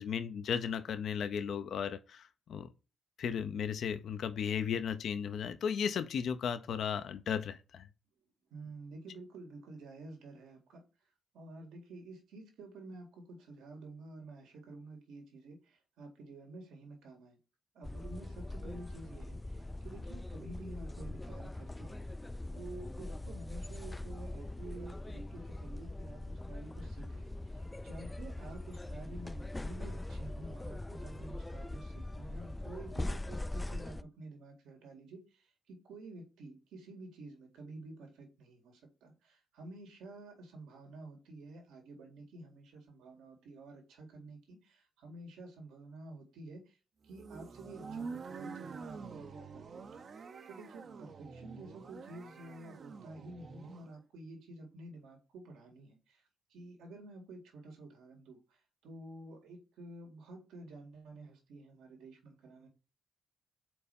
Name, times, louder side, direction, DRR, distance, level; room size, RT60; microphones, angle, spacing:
voice 1, 0.0-2.7 3.2-7.9, left 7 dB, 65° left, 0.6 m, -35 dB
voice 2, 8.5-10.8 11.3-17.4 17.7-22.1 22.5-46.8 47.0-50.0 50.5-56.2 56.5-62.7, right 2 dB, 85° right, 1.8 m, -50 dB
sound 1, 17.8-34.0, left 2 dB, 15° left, 0.3 m, -42 dB
sound 2, 47.1-53.9, right 5 dB, 50° right, 0.7 m, -47 dB
4.5 x 4.2 x 5.2 m
cardioid pair, 90°, 0 cm